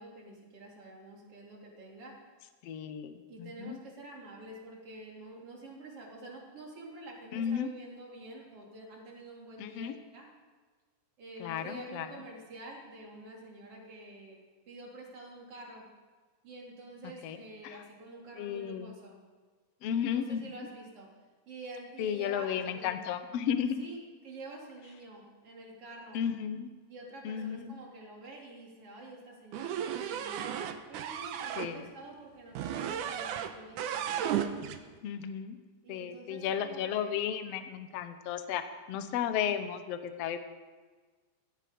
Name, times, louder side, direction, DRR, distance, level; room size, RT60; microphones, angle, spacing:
voice 1, 0.0-2.2 3.3-10.3 11.2-14.4 14.7-15.8 16.4-19.2 20.0-21.1 21.5-22.9 23.8-24.0 24.2-26.2 26.9-30.5 30.9-34.2 35.8-37.2, right 2 dB, 45° right, -2 dB, 4.1 m, -48 dB
voice 2, 2.6-3.8 7.3-7.7 9.6-9.9 11.4-12.1 17.0-17.4 17.6-17.8 18.4-19.0 19.8-20.7 22.0-23.9 26.1-26.7 27.2-27.7 31.6-31.9 35.0-35.6 35.9-38.6 38.9-40.4, left 8 dB, 65° left, 9 dB, 1.8 m, -34 dB
sound 1, 29.5-31.7 32.5-33.5 33.8-34.8, right 9 dB, 85° right, 2.4 m, -34 dB
16.5 x 15.0 x 5.2 m, 1.4 s
omnidirectional pair, 3.6 m